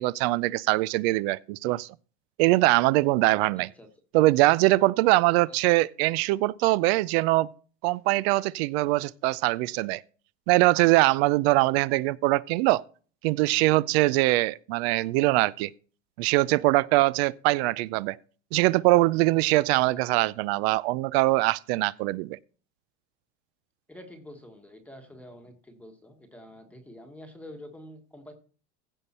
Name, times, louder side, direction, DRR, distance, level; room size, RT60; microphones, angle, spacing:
voice 1, 0.0-1.9 2.4-3.7 4.1-7.5 7.8-10.0 10.5-12.8 13.2-15.7 16.2-18.2 18.5-22.4, right 19 dB, 60° right, 0.5 m, -22 dB
voice 2, 3.5-3.9 19.9-20.4 23.9-28.3, left 1 dB, 5° left, 1.2 m, -47 dB
15.5 x 5.4 x 4.2 m
supercardioid pair, 140°, 36 cm